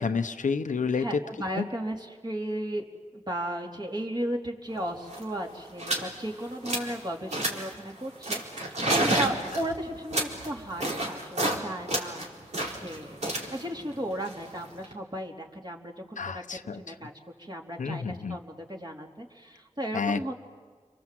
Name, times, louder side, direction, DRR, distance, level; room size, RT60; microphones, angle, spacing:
voice 1, 0.0-1.1 1.6-1.7 16.2-16.8 17.8-18.4 19.9-20.3, left 5 dB, 90° left, 8 dB, 0.9 m, -29 dB
voice 2, 1.0-2.8 3.1-12.3 12.8-16.4 16.8-17.1 17.4-20.3, right 1 dB, 35° right, 0 dB, 3.7 m, -35 dB
sound 1, 4.8-4.9 5.0-5.3 5.8-6.1 6.4-7.0 7.3-7.8 8.2-11.6 11.9-14.9, right 1 dB, 65° right, 4.3 m, -30 dB
30.0 x 23.5 x 7.8 m, 1.6 s
cardioid pair, 45°, 13 cm